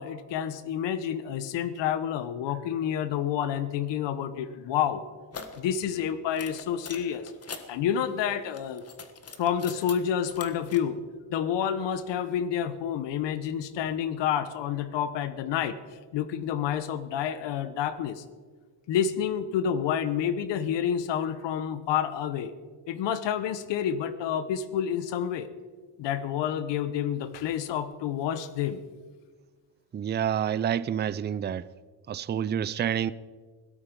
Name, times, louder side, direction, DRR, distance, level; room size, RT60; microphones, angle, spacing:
voice 1, 0.0-5.0 5.6-7.3 7.7-8.8 9.4-11.0 11.3-15.8 16.1-18.2 18.9-22.5 22.9-25.5 26.0-28.8, left 9 dB, 85° left, 1.2 m, -29 dB
sound 1, 5.3-5.6 6.3-7.7 8.4-10.0 10.2-10.8, left 5 dB, 35° left, 1.6 m, -42 dB
voice 2, 29.9-31.7 32.1-33.1, right 9 dB, 25° right, 0.4 m, -28 dB
17.0 x 12.5 x 5.4 m
cardioid pair, 105°, 42 cm